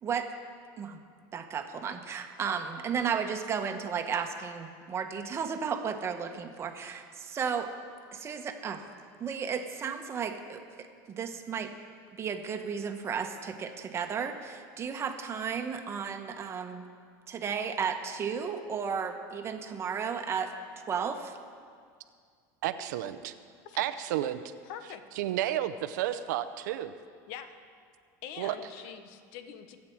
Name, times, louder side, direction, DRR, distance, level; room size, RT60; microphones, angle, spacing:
voice 1, 1.3-7.7 8.1-8.8 9.2-10.6 11.1-11.7 12.2-16.8 17.3-21.4, right 6 dB, 30° right, 5 dB, 1.2 m, -34 dB
voice 2, 22.6-23.3 23.8-24.4 25.2-26.9 28.4-28.5, right 12 dB, 90° right, 12 dB, 0.7 m, -31 dB
voice 3, 24.6-25.0 27.3-27.5 28.2-29.8, left 9 dB, 65° left, 9 dB, 1.1 m, -44 dB
25.5 x 8.7 x 4.7 m, 2.1 s
supercardioid pair, 135°, 9 cm